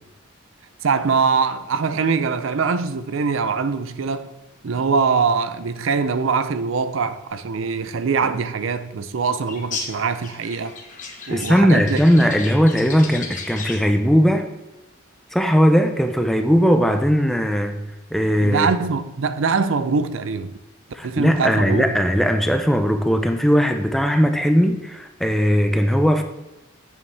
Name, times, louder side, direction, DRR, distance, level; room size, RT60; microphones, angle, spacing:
voice 1, 0.8-4.4 4.6-10.7 11.3-12.3 18.4-20.5 21.0-21.9, right 5 dB, 70° right, 0.5 m, -23 dB
sound 1, 9.5-14.0, left 4 dB, 40° left, 1.3 m, -35 dB
voice 2, 11.3-14.5 15.3-17.8 18.1-18.7 20.9-26.2, equal, ahead, 0.6 m, -18 dB
8.6 x 7.0 x 3.4 m
head